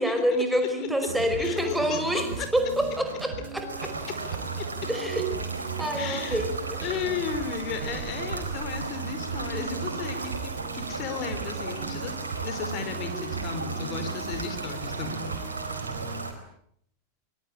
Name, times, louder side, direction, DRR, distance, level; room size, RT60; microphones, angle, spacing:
voice 1, 0.0-2.3 2.5-3.9 4.9-5.3 5.8-6.9, equal, 5° right, 6 dB, 5.0 m, -27 dB
voice 2, 0.5-0.9 1.4-2.5 4.6-4.7 6.0-6.4 6.8-12.1 12.4-15.3, left 7 dB, 40° left, 8 dB, 5.0 m, -35 dB
sound 1, 1.1-16.2, right 5 dB, 60° right, 4.8 m, -37 dB
sound 2, 3.7-16.3, right 4 dB, 75° right, 4.5 m, -36 dB
24.0 x 22.0 x 9.0 m, 0.69 s
figure-of-eight pair, 90°, 0 cm